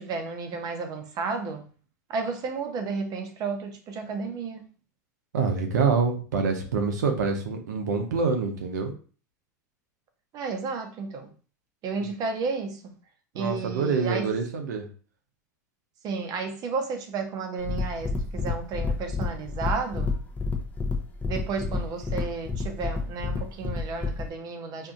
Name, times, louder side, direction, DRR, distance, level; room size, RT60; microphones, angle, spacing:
voice 1, 0.0-1.7 2.1-4.7 10.3-11.3 11.8-12.9 13.3-14.3 16.0-20.2 21.3-24.9, right 4 dB, 40° right, 6 dB, 0.6 m, -32 dB
voice 2, 5.3-8.9 12.0-12.1 13.3-14.8, right 5 dB, 80° right, 4 dB, 0.6 m, -26 dB
sound 1, 17.6-24.3, left 4 dB, 15° left, 0.6 m, -30 dB
2.6 x 2.5 x 2.4 m, 0.40 s
hypercardioid pair, 95°, 10 cm